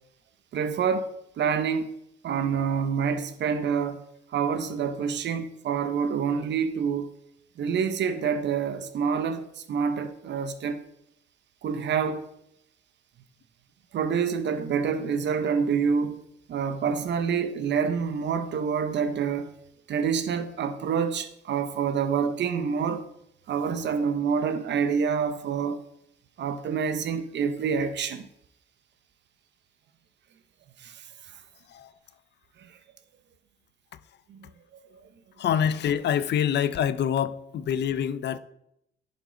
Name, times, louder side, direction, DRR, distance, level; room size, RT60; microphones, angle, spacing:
voice 1, 0.5-1.1 1.4-1.9 2.2-4.0 4.3-7.1 7.6-10.8 11.6-12.3 13.9-16.2 16.5-19.5 19.9-23.0 23.5-25.8 26.4-28.3 30.8-31.0 34.3-34.4, right 6 dB, 65° right, 0.8 m, -27 dB
voice 2, 35.4-38.4, left 9 dB, 60° left, 0.5 m, -26 dB
10.5 x 5.3 x 3.9 m
cardioid pair, 90°, 20 cm